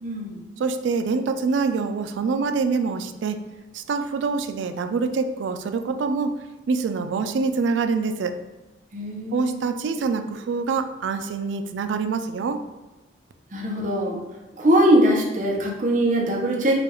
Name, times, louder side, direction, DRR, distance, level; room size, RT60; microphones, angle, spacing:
voice 1, 0.0-0.4 8.9-9.6 13.5-14.2 14.6-16.8, right 1 dB, 40° right, -1 dB, 0.7 m, -21 dB
voice 2, 0.6-3.4 3.7-6.3 6.7-8.3 9.3-12.6, right 4 dB, 80° right, 9 dB, 0.3 m, -25 dB
4.9 x 2.3 x 3.0 m, 1.2 s
head